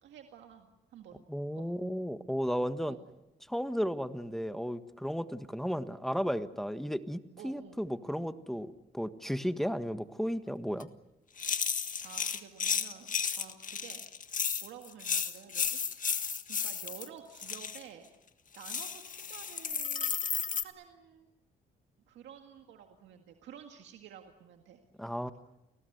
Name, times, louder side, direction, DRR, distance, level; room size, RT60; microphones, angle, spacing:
voice 1, 0.0-1.2 1.5-1.7 2.9-3.0 7.4-7.8 12.0-14.0 14.6-15.8 16.5-18.1 18.5-20.2 20.5-21.3 22.1-25.3, right 8 dB, 80° right, 4 dB, 1.9 m, -51 dB
voice 2, 1.3-3.0 3.5-10.9 25.0-25.3, equal, ahead, 10 dB, 1.5 m, -34 dB
sound 1, 10.8-10.9 11.4-17.1 17.4-17.8 18.5-20.6, left 6 dB, 45° left, 1.6 m, -33 dB
29.5 x 19.0 x 8.1 m, 0.96 s
cardioid pair, 70°, 19 cm